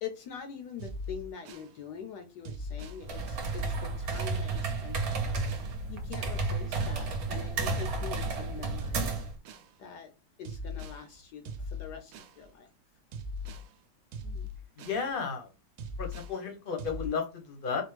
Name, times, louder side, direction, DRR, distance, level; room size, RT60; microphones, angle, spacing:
voice 1, 0.0-9.2 9.8-10.1 10.4-12.7 14.2-14.5, left 7 dB, 70° left, 6 dB, 1.2 m, -44 dB
sound 1, 0.8-1.7 2.4-3.0 3.5-4.4 5.1-5.7 6.1-7.0 7.8-8.4 8.8-9.7 10.4-11.0 11.5-12.4 13.1-13.7 14.1-15.0 15.8-16.4 16.8-17.1, left 2 dB, 90° right, 1.3 m, -39 dB
sound 2, 3.0-9.4, right 4 dB, 60° right, 1.1 m, -32 dB
voice 2, 14.8-15.5 16.0-17.8, left 5 dB, 40° left, 3 dB, 0.8 m, -33 dB
4.3 x 2.3 x 3.2 m, 0.30 s
omnidirectional pair, 2.0 m